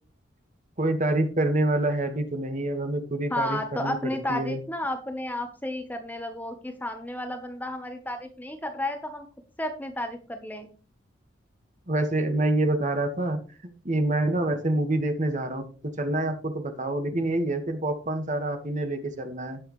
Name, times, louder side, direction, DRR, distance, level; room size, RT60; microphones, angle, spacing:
voice 1, 0.8-4.6 11.9-13.4 13.9-15.6 16.0-19.6, right 1 dB, 40° right, 6 dB, 1.7 m, -26 dB
voice 2, 3.3-9.3 9.6-10.7, left 1 dB, 10° left, 6 dB, 1.0 m, -32 dB
17.5 x 6.4 x 3.2 m, 0.36 s
head